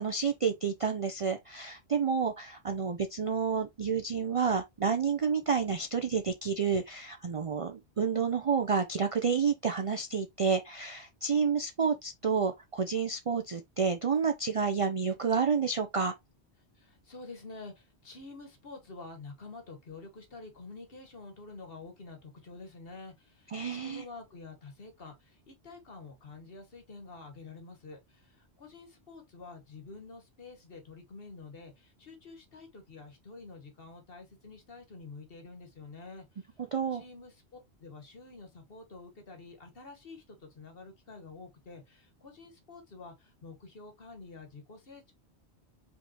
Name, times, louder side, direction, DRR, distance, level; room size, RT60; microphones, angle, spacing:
voice 1, 0.0-16.1 23.5-24.0 36.7-37.0, right 6 dB, 50° right, 0.4 m, -29 dB
voice 2, 16.7-36.5 36.9-45.1, left 3 dB, 55° left, 1.5 m, -48 dB
5.1 x 3.5 x 2.8 m
omnidirectional pair, 1.1 m